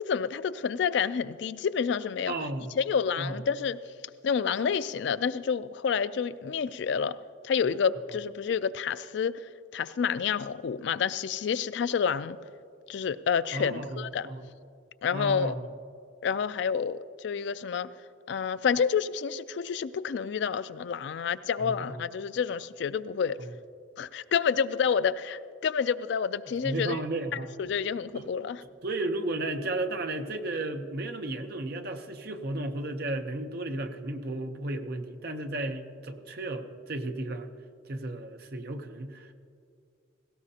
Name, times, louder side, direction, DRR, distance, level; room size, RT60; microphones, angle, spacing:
voice 1, 0.0-2.3 2.8-3.8 4.2-7.1 7.4-9.4 9.7-12.4 12.9-14.3 15.0-15.5 16.2-17.9 18.3-23.4 24.0-27.0 27.3-28.6, left 6 dB, 60° left, 15 dB, 0.3 m, -29 dB
voice 2, 2.3-2.7 3.2-3.4 13.5-14.4 15.1-15.6 21.5-22.1 23.4-23.5 26.6-27.5 28.1-28.4 28.8-37.5 37.8-39.3, right 2 dB, 50° right, 6 dB, 0.7 m, -34 dB
18.0 x 17.0 x 2.8 m, 2.4 s
head